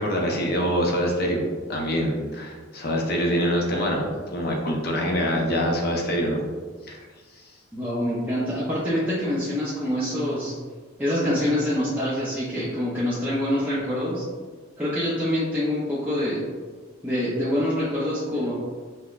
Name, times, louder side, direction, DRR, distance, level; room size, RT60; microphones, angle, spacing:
voice 1, 0.0-1.4 1.7-6.4 6.9-7.0, equal, 50° left, 0 dB, 0.6 m, -25 dB
voice 2, 7.7-10.5 11.0-14.2 14.8-16.4 17.0-18.5, left 1 dB, 10° right, -8 dB, 0.5 m, -25 dB
5.7 x 2.1 x 2.3 m, 1.4 s
head